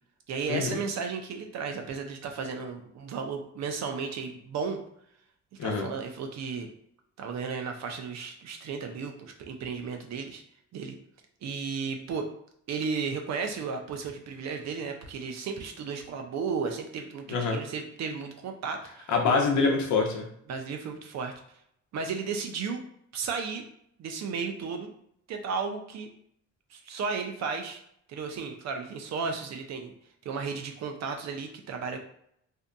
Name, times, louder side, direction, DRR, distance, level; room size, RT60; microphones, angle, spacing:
voice 1, 0.3-4.8 5.6-6.7 7.2-10.4 10.7-11.0 11.4-12.3 12.7-19.1 20.5-21.3 21.9-22.8 23.1-23.6 24.0-24.9 25.3-26.1 26.7-27.8 28.1-29.9 30.2-32.0, right 5 dB, 60° right, 4 dB, 0.5 m, -34 dB
voice 2, 17.3-17.6 19.1-20.2, left 4 dB, 70° left, 1 dB, 0.7 m, -25 dB
2.6 x 2.5 x 2.2 m, 0.70 s
cardioid pair, 90°, 30 cm